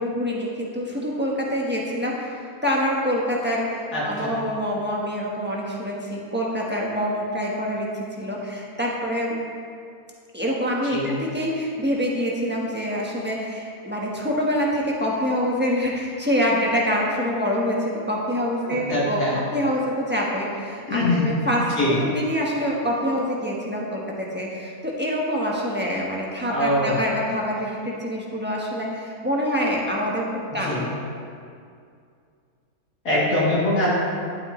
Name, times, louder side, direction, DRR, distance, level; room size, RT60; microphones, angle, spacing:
voice 1, 0.0-9.3 10.3-19.2 19.5-21.6 22.0-30.2 30.5-30.9, equal, 10° right, -4 dB, 1.1 m, -26 dB
voice 2, 3.9-4.3 10.9-11.1 18.6-19.4 20.9-21.3 21.8-22.0 26.5-27.0 30.5-30.9 33.0-33.9, left 1 dB, 85° left, -8 dB, 3.2 m, -23 dB
11.5 x 8.6 x 3.2 m, 2.4 s
omnidirectional pair, 1.6 m